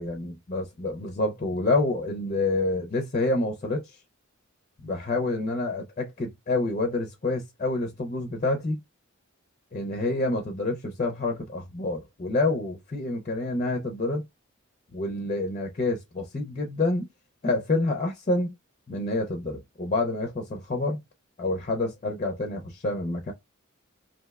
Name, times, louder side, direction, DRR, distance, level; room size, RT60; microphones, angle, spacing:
voice 1, 0.0-4.0 4.8-8.8 9.7-14.2 14.9-17.1 17.4-18.5 18.9-21.0 21.4-23.3, left 2 dB, 35° left, 0.5 m, -28 dB
3.1 x 2.6 x 2.3 m
head